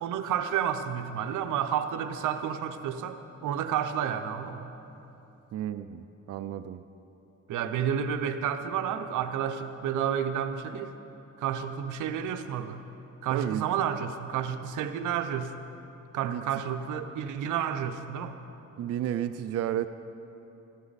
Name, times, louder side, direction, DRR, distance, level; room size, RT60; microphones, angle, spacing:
voice 1, 0.0-4.7 7.5-10.9 11.4-12.8 13.2-15.5 16.1-18.4, right 8 dB, 85° right, 9 dB, 0.7 m, -30 dB
voice 2, 5.5-6.8 13.3-13.6 16.2-16.4 18.8-19.9, right 11 dB, 55° right, 10 dB, 0.5 m, -32 dB
14.5 x 13.0 x 4.1 m, 3.0 s
cardioid pair, 90°, 30 cm